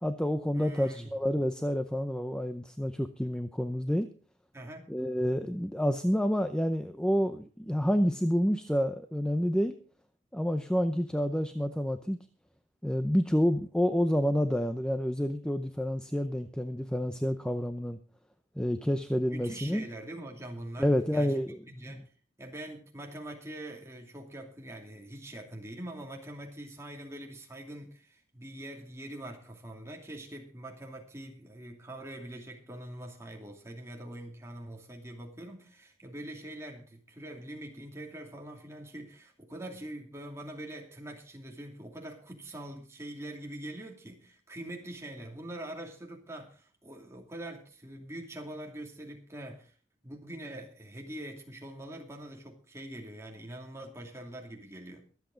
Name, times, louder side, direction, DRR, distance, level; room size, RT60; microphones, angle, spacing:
voice 1, 0.0-4.1 4.9-9.7 10.3-12.2 12.8-18.0 18.6-19.8 20.8-21.6 21.9-22.0, equal, 5° left, 0.6 m, -29 dB
voice 2, 0.5-1.1 4.5-4.9 19.2-21.4 21.7-22.1 22.4-49.7 50.0-55.1, right 1 dB, 15° right, 2.6 m, -43 dB
23.0 x 8.3 x 3.9 m
head